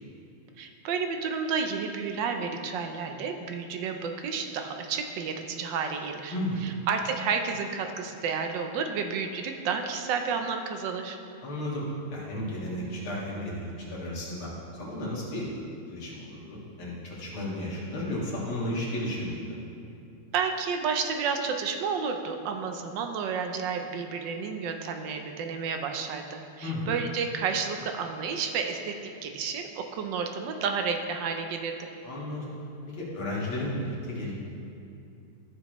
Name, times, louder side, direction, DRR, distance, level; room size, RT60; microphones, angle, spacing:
voice 1, 0.6-6.3 6.6-11.2 20.3-31.9, right 5 dB, 70° right, 5 dB, 1.2 m, -31 dB
voice 2, 6.3-6.7 11.4-11.8 12.1-14.5 14.7-15.5 15.9-19.4 26.6-26.9 32.0-32.5 32.9-34.3, left 1 dB, 75° left, -5 dB, 2.6 m, -33 dB
13.5 x 6.5 x 3.0 m, 2.6 s
omnidirectional pair, 2.3 m